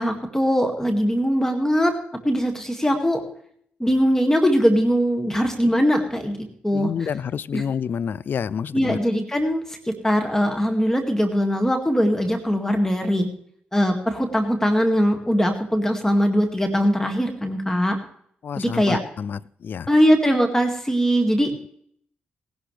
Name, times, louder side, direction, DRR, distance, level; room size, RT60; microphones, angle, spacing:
voice 1, 0.0-1.9 2.2-3.2 3.8-6.4 6.6-7.1 7.5-7.6 8.7-13.3 13.7-18.0 18.6-19.0 19.9-21.5, equal, 10° left, 4 dB, 2.1 m, -21 dB
voice 2, 6.7-9.0 18.4-19.9, left 7 dB, 60° left, 19 dB, 0.4 m, -28 dB
18.0 x 11.5 x 3.3 m, 0.64 s
supercardioid pair, 45°, 4 cm